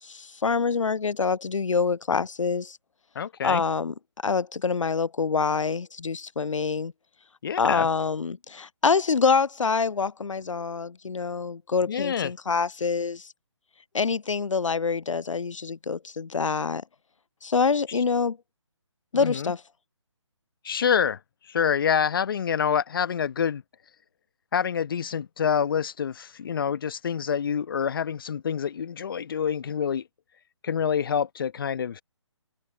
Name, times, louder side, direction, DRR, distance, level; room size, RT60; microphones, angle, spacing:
voice 1, 0.0-2.8 3.4-3.9 4.2-6.9 7.6-13.3 13.9-16.8 17.4-18.4 19.1-19.6, left 5 dB, 85° left, 0.4 m, -26 dB
voice 2, 3.1-3.6 7.4-7.9 11.9-12.3 19.1-19.5 20.6-21.2 21.5-23.6 24.5-30.1 30.6-32.0, left 7 dB, 45° left, 1.2 m, -27 dB
figure-of-eight pair, 145°, 16 cm